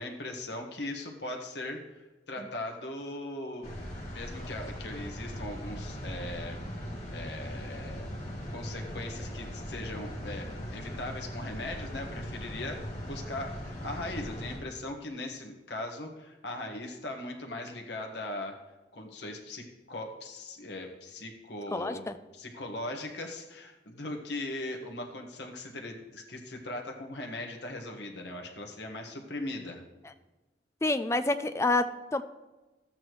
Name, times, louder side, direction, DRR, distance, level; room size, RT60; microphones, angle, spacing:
voice 1, 0.0-1.8 2.3-3.7 4.1-6.6 7.1-8.1 8.5-18.6 18.9-22.0 22.3-29.8, left 2 dB, 75° left, 2 dB, 1.5 m, -39 dB
sound 1, 3.6-14.6, equal, 40° left, 2.5 m, -39 dB
voice 2, 21.7-22.2 30.8-32.2, left 2 dB, 15° left, 11 dB, 0.4 m, -28 dB
13.0 x 8.7 x 3.1 m, 1.1 s
head